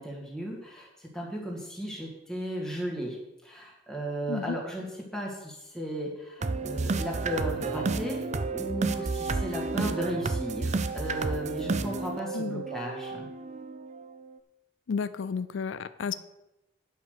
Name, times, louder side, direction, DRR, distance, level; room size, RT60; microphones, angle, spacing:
voice 1, 0.0-3.2 3.4-13.3, equal, 5° left, -2 dB, 2.1 m, -35 dB
sound 1, 6.4-14.4, right 3 dB, 35° right, 0.5 m, -31 dB
voice 2, 12.3-12.7 14.9-16.1, left 5 dB, 85° left, 14 dB, 0.4 m, -32 dB
9.7 x 5.8 x 6.6 m, 0.94 s
head